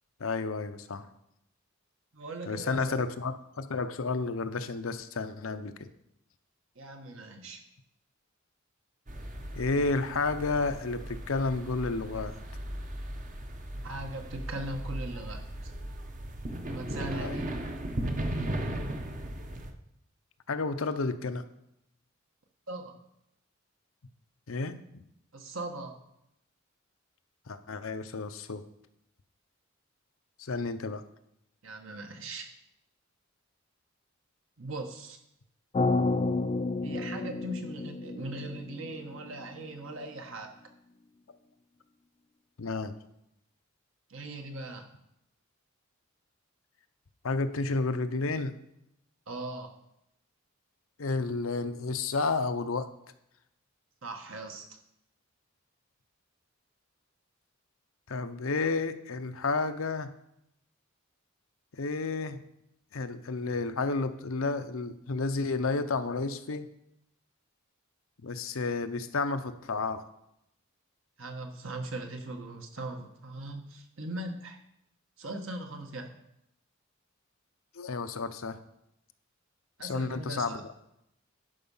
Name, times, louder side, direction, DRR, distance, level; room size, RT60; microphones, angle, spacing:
voice 1, 0.2-1.1 2.5-5.9 9.6-12.4 17.1-17.4 20.5-21.4 24.5-25.0 27.5-28.6 30.4-31.0 42.6-42.9 47.2-48.5 51.0-52.9 58.1-60.1 61.7-62.4 62.9-66.7 68.2-70.1 77.7-78.6 79.8-80.6, left 3 dB, 80° left, 10 dB, 0.7 m, -31 dB
voice 2, 2.1-3.0 6.7-7.6 13.8-15.7 16.7-17.5 22.7-23.0 25.3-26.0 31.6-32.5 34.6-35.2 36.8-40.5 44.1-44.9 49.3-49.7 54.0-54.7 71.2-74.6 75.2-76.1 79.8-80.6, right 2 dB, 65° right, 4 dB, 1.4 m, -39 dB
sound 1, 9.1-19.7, right 1 dB, 40° right, 0.9 m, -37 dB
sound 2, 35.7-39.9, left 3 dB, 30° left, 0.4 m, -31 dB
11.0 x 5.5 x 5.5 m, 0.81 s
head